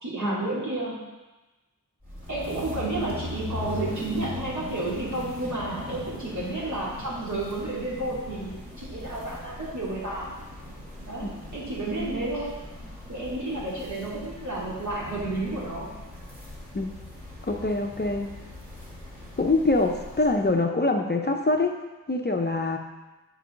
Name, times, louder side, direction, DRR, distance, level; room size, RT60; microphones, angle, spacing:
voice 1, 0.0-1.1 2.3-10.3 11.1-12.6 13.1-16.0, right 2 dB, 55° right, -7 dB, 2.8 m, -31 dB
sound 1, 2.0-20.6, left 1 dB, 25° right, 2.8 m, -40 dB
voice 2, 17.5-18.3 19.4-21.7 22.1-22.8, left 2 dB, 30° left, 3 dB, 0.6 m, -24 dB
8.2 x 4.7 x 5.0 m, 1.1 s
wide cardioid pair, 75°, 35 cm